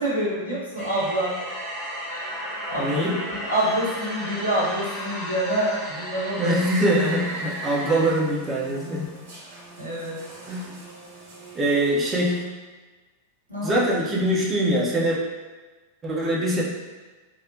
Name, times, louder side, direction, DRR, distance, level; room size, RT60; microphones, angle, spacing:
voice 1, 0.0-1.3 2.7-3.0 3.4-6.5 9.8-10.1 13.5-13.8, right 1 dB, 85° right, -8 dB, 0.9 m, -26 dB
sound 1, 0.8-8.2, equal, 25° left, 1.3 m, -33 dB
voice 2, 2.8-3.2 6.4-9.1 10.4-10.8 11.5-12.4 13.6-15.2 16.0-16.6, right 1 dB, 20° right, -4 dB, 0.6 m, -23 dB
sound 2, 6.6-12.4, right 1 dB, 55° right, 0.9 m, -45 dB
3.4 x 2.1 x 2.6 m, 1.3 s
figure-of-eight pair, 90°, 0 cm